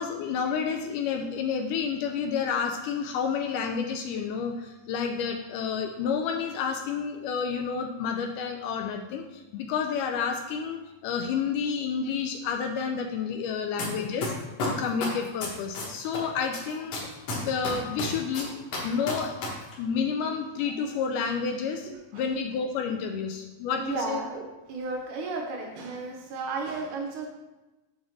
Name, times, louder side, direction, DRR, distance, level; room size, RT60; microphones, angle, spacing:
voice 1, 0.0-14.3 14.7-17.1 17.4-19.4 19.8-24.2, left 6 dB, 80° left, 4 dB, 2.0 m, -30 dB
sound 1, 13.8-13.9 14.2-16.2 16.5-19.5 19.7-19.8, left 3 dB, 55° left, 2.1 m, -31 dB
voice 2, 21.9-22.2 22.5-22.6 23.8-27.3, right 3 dB, 70° right, 2 dB, 2.1 m, -34 dB
7.1 x 3.5 x 6.3 m, 1.1 s
omnidirectional pair, 4.0 m